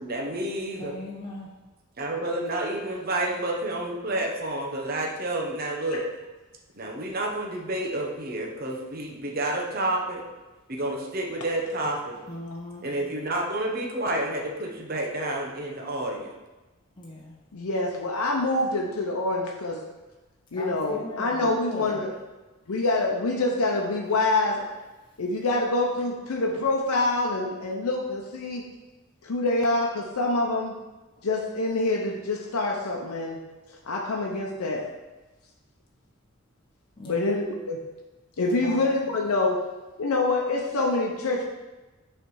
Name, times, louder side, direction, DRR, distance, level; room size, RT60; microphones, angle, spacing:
voice 1, 0.0-1.0 2.0-6.1 6.8-10.2 10.7-12.1 12.8-16.3, right 1 dB, 40° right, 0 dB, 0.8 m, -29 dB
voice 2, 0.8-1.5 12.3-12.8 17.0-17.3 20.5-22.0 37.0-37.3 38.5-39.0, left 1 dB, 20° left, -5 dB, 0.8 m, -39 dB
voice 3, 17.5-19.8 20.5-22.1 22.7-24.7 25.2-28.6 29.2-30.7 31.2-33.4 33.9-34.9 37.1-37.8 38.4-39.6 40.0-41.4, left 2 dB, 80° left, -1 dB, 0.7 m, -26 dB
6.6 x 3.4 x 4.7 m, 1.1 s
head